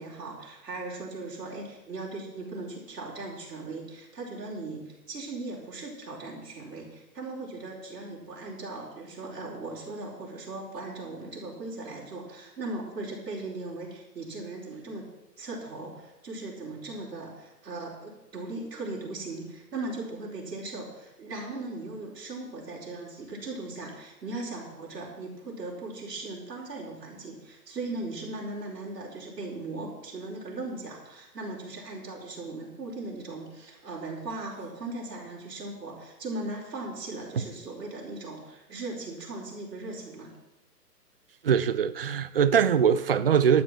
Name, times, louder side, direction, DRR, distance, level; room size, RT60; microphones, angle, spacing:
voice 1, 0.0-15.0 15.4-40.3, right 2 dB, 80° right, 4.7 m, -38 dB
voice 2, 41.4-43.6, right 7 dB, 40° right, 0.5 m, -22 dB
12.5 x 6.9 x 7.5 m
hypercardioid pair, 150°, 49 cm